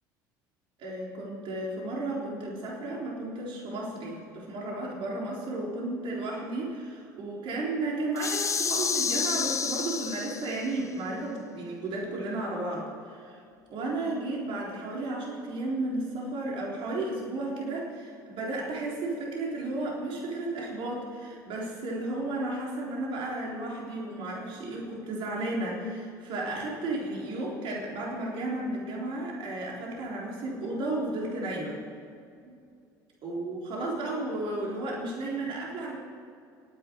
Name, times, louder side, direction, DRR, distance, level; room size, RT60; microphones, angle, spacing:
voice 1, 0.8-13.4 13.7-31.8 32.4-32.6 33.2-36.0, right 2 dB, 55° right, -3 dB, 4.0 m, -33 dB
door future open, 8.1-10.7, left 6 dB, 30° left, 1.0 m, -29 dB
29.0 x 10.0 x 4.8 m, 2.4 s
hypercardioid pair, 75°, 10 cm